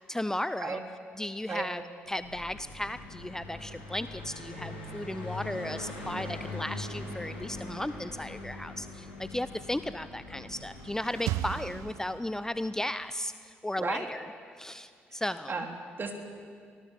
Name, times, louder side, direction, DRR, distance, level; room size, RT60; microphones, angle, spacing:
voice 1, 0.1-0.8 1.2-14.2 14.6-15.5, left 1 dB, 10° left, 13 dB, 0.6 m, -35 dB
Car passing by, 2.0-12.6, left 2 dB, 90° left, 4.1 m, -42 dB
sound 1, 10.3-12.7, right 15 dB, 65° right, 0.5 m, -37 dB
voice 2, 15.5-16.1, right 4 dB, 35° right, 3 dB, 3.6 m, -34 dB
24.5 x 17.5 x 7.7 m, 2.2 s
figure-of-eight pair, 45°, 6 cm